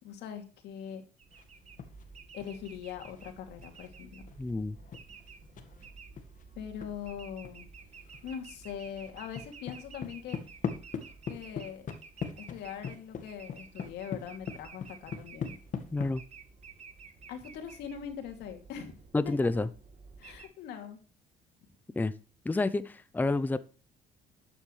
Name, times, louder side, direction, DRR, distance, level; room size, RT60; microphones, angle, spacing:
voice 1, 0.0-1.0 2.3-4.3 6.6-7.7 8.2-10.4 11.3-11.9 12.5-15.6 17.3-19.0 19.2-19.3 20.2-21.0, left 8 dB, 80° left, 2.8 m, -42 dB
sound 1, 1.2-20.5, right 5 dB, 40° right, 2.0 m, -52 dB
sound 2, 1.3-2.1 2.4-6.9 7.4-7.5 7.8-8.4 8.6-16.1, left 6 dB, 50° left, 1.7 m, -41 dB
voice 2, 4.4-4.8 15.9-16.2 19.1-19.7 22.0-22.1 22.4-23.6, left 2 dB, 10° left, 0.6 m, -29 dB
12.0 x 9.0 x 3.3 m
cardioid pair, 110°, 17 cm